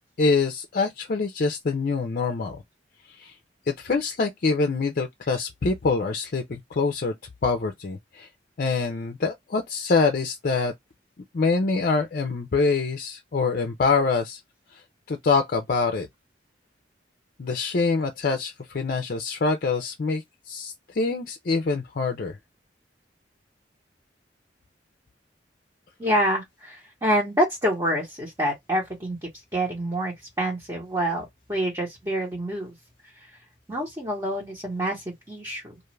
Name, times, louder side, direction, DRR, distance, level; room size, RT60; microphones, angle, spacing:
voice 1, 0.2-2.6 3.1-3.3 3.7-7.1 7.4-8.3 8.6-10.7 11.3-14.4 14.7-14.8 15.1-16.1 17.4-22.4, left 4 dB, 50° left, 0.5 m, -25 dB
voice 2, 26.0-29.2 29.5-32.7 33.2-33.3 33.7-35.8, equal, 20° right, 1.0 m, -27 dB
2.5 x 2.4 x 3.1 m
head